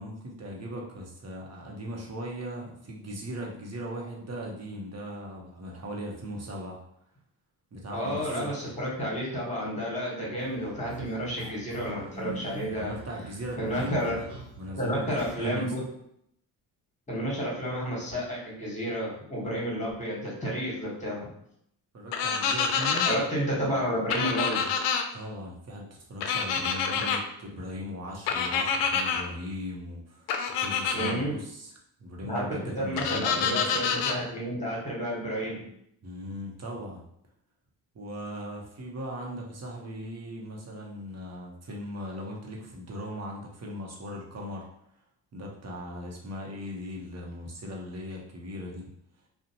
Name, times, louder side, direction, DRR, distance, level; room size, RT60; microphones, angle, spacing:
voice 1, 0.0-6.8 7.7-8.5 12.7-14.0 14.6-15.7 21.9-23.1 25.1-31.7 32.0-33.7 36.0-37.0 37.9-44.7 45.3-48.9, equal, 35° right, -1 dB, 0.8 m, -38 dB
voice 2, 7.9-12.9 13.6-14.1 14.7-15.8 17.1-21.3 23.0-24.6 30.9-31.3 32.2-35.6, equal, 15° left, -4 dB, 1.3 m, -31 dB
sound 1, 10.4-15.3, right 2 dB, 80° right, 0.9 m, -43 dB
sound 2, 22.1-23.2 24.1-25.0 26.2-27.2 28.3-29.2 30.3-31.1 33.0-34.2, left 6 dB, 65° left, 0.5 m, -27 dB
2.5 x 2.1 x 2.8 m, 0.73 s
supercardioid pair, 55°, 46 cm